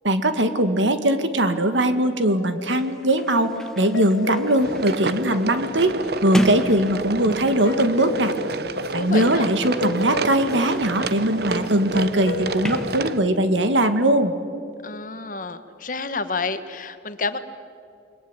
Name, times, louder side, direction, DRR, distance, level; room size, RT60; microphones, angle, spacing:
voice 1, 0.0-6.0 6.2-8.3 8.9-14.3, right 1 dB, 90° right, 9 dB, 2.1 m, -20 dB
sound 1, 2.4-6.2 7.6-9.5 9.8-14.3, left 4 dB, 75° left, 1.4 m, -34 dB
Sliding door, 2.8-7.7 8.6-13.6, equal, 5° left, 1.5 m, -35 dB
sound 2, 4.6-13.2, right 3 dB, 60° right, 1.0 m, -30 dB
voice 2, 8.9-9.5 14.8-17.4, left 4 dB, 45° left, 10 dB, 1.4 m, -29 dB
29.0 x 22.0 x 9.0 m, 2.4 s
head